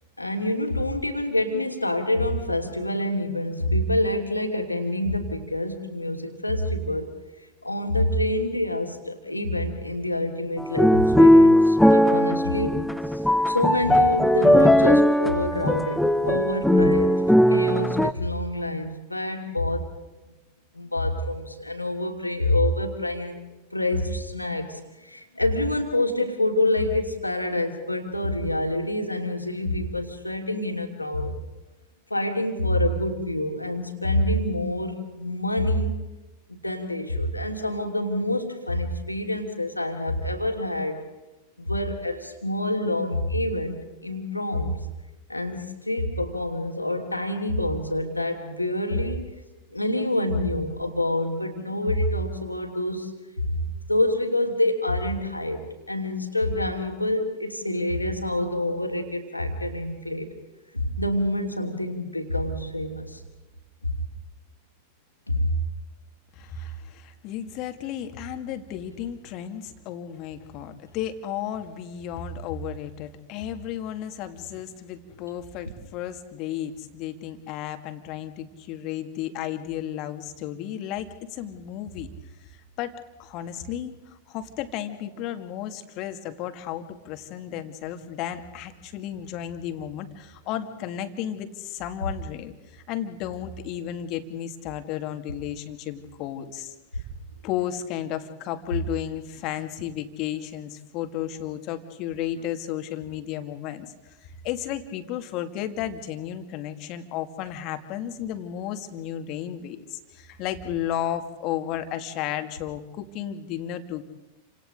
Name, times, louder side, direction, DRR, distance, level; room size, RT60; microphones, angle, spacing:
voice 1, 0.2-7.1 7.6-12.8 13.1-17.2 17.5-19.9 20.7-23.4 23.7-31.3 32.1-35.9 36.5-41.0 41.6-44.9 45.3-49.3 49.7-53.6 53.9-60.3 60.7-63.2 65.3-65.6, left 1 dB, 85° left, 3 dB, 3.0 m, -27 dB
sound 1, 10.6-18.1, left 1 dB, 5° left, 0.8 m, -18 dB
voice 2, 66.3-82.1 82.8-96.7 97.4-103.9 104.2-114.0, left 10 dB, 40° left, 7 dB, 2.2 m, -33 dB
30.0 x 26.5 x 3.9 m, 1.1 s
figure-of-eight pair, 90°, 0 cm